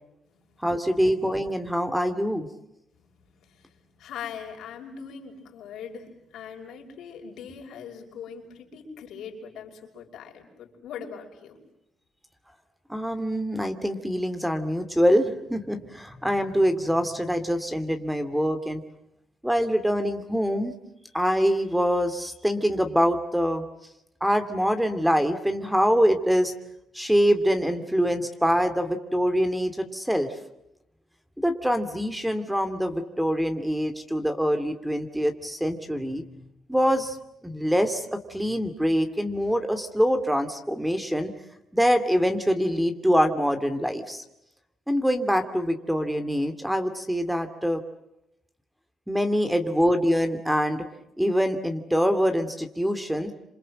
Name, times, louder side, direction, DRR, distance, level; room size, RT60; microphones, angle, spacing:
voice 1, 0.6-2.5 12.9-18.8 19.4-20.7 21.1-23.6 24.2-26.5 26.9-30.3 31.4-36.2 36.7-37.2 37.4-41.3 41.7-44.2 44.9-47.8 49.1-50.8 51.2-53.3, equal, 5° right, 8 dB, 2.6 m, -24 dB
voice 2, 3.4-3.7 4.0-11.6, left 7 dB, 75° left, 2 dB, 5.7 m, -41 dB
29.0 x 27.0 x 7.7 m, 0.85 s
cardioid pair, 90°, 0 cm